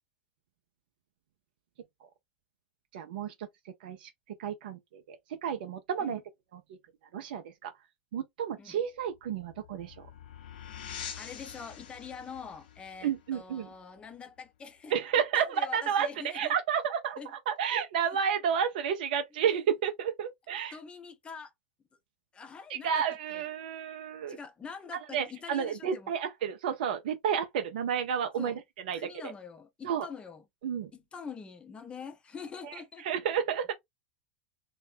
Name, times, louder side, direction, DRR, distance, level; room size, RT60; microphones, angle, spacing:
voice 1, 2.9-3.3 3.8-4.1 4.4-5.2 5.4-6.2 7.1-7.7 8.1-10.1 13.0-13.7 14.9-16.1 16.3-17.2 17.5-20.8 22.7-24.4 25.1-28.6 28.9-29.1 29.8-30.1 30.6-30.9 32.6-33.7, right 8 dB, 60° right, 0.4 m, -31 dB
sound 1, 9.0-14.4, left 8 dB, 60° left, 0.6 m, -46 dB
voice 2, 11.2-14.9 15.3-16.5 17.2-17.3 19.3-19.6 20.7-21.5 22.3-23.0 23.3-23.4 24.3-26.1 28.4-28.6 28.9-30.4 30.9-33.1, left 6 dB, 20° left, 0.6 m, -44 dB
2.5 x 2.1 x 3.2 m
figure-of-eight pair, 85°, 6 cm